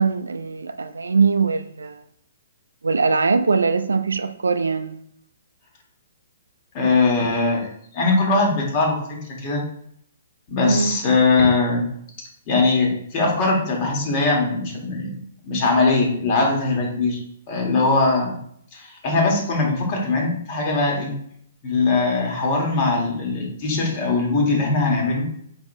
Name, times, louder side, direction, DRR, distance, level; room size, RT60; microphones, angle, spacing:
voice 1, 0.0-2.0 2.8-5.0 10.6-11.0, right 4 dB, 85° right, 0.3 m, -21 dB
voice 2, 6.7-7.7 7.9-9.0 9.4-9.6 10.5-11.9 12.5-15.1 15.4-17.2 17.5-18.4 18.7-21.1 21.6-25.4, left 3 dB, 40° left, 1.6 m, -20 dB
4.9 x 3.6 x 2.6 m
hypercardioid pair, 130°, 0 cm